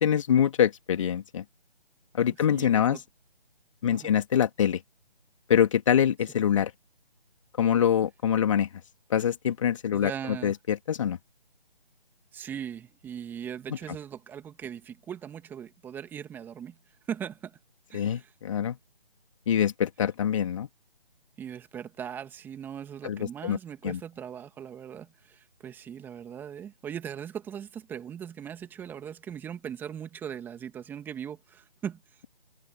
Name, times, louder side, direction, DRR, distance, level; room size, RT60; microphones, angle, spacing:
voice 1, 0.0-1.4 2.1-3.0 3.8-4.8 5.5-6.7 7.6-8.7 9.1-10.1 10.4-11.2 17.9-18.8 19.5-20.7 23.0-23.6 23.8-24.0, left 9 dB, 30° left, 2.6 m, -24 dB
voice 2, 2.5-3.0 3.9-4.1 9.9-10.5 12.3-17.6 17.9-18.3 21.4-32.2, right 8 dB, 5° right, 2.5 m, -39 dB
figure-of-eight pair, 155°, 30 cm